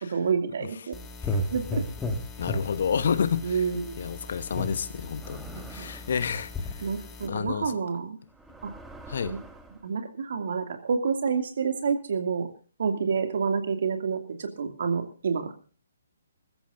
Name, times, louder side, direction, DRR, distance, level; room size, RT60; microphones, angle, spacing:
voice 1, 0.1-1.0 1.5-1.8 3.4-4.0 5.5-5.9 6.8-8.2 8.6-8.7 9.3-9.4 9.8-12.5 12.8-15.5, right 5 dB, 55° right, 2.5 m, -28 dB
sound 1, 0.9-7.3, left 1 dB, 10° left, 2.1 m, -35 dB
voice 2, 2.4-3.5 4.0-6.5 7.3-7.7 9.1-9.3, left 7 dB, 55° left, 1.1 m, -29 dB
sound 2, 5.2-6.3 7.3-7.5 8.3-9.9, right 2 dB, 5° right, 1.3 m, -46 dB
22.0 x 14.0 x 2.7 m
figure-of-eight pair, 135°, 0 cm